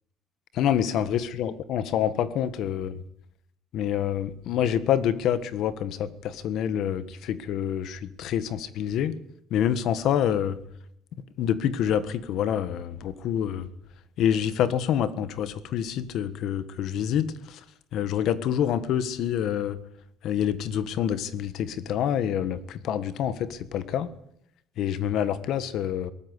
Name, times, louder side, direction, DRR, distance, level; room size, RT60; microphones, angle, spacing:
voice 1, 0.6-2.9 3.7-9.1 9.5-10.6 11.4-13.6 14.2-17.3 17.9-19.8 20.2-24.1 24.8-26.1, left 9 dB, 55° left, 14 dB, 1.5 m, -27 dB
23.0 x 18.5 x 8.4 m, 0.74 s
cardioid pair, 180°, 0 cm